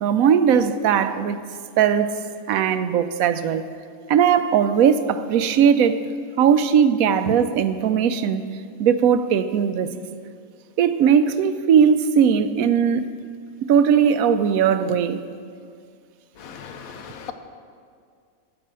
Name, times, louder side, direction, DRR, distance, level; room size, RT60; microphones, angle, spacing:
voice 1, 0.0-1.4 1.8-2.1 2.5-3.6 4.1-6.0 6.4-8.5 8.8-9.9 10.8-13.1 13.7-15.2, right 7 dB, 80° right, 11 dB, 1.0 m, -18 dB
voice 2, 16.4-17.3, left 7 dB, 75° left, 7 dB, 1.2 m, -38 dB
9.5 x 8.9 x 7.5 m, 2.2 s
omnidirectional pair, 1.5 m